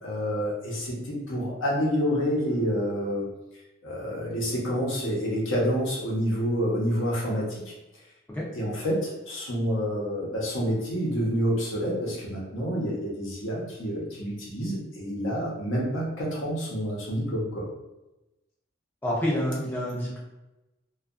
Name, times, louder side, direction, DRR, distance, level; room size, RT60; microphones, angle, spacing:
voice 1, 0.0-3.3 3.8-7.7 8.5-17.7, equal, 75° left, -4 dB, 0.8 m, -28 dB
voice 2, 19.0-20.2, equal, 10° left, -5 dB, 0.4 m, -28 dB
2.6 x 2.3 x 2.4 m, 1.0 s
head